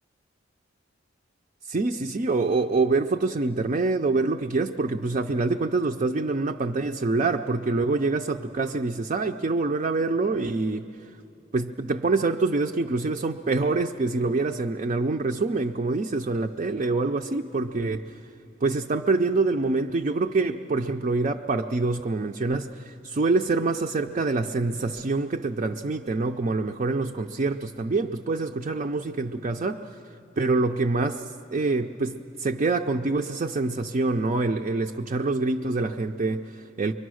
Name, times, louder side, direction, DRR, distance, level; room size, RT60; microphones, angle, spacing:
voice 1, 1.6-10.9 11.5-18.2 18.6-30.0 30.4-36.9, right 3 dB, 40° right, 4 dB, 0.4 m, -26 dB
23.5 x 23.5 x 6.3 m, 2.7 s
head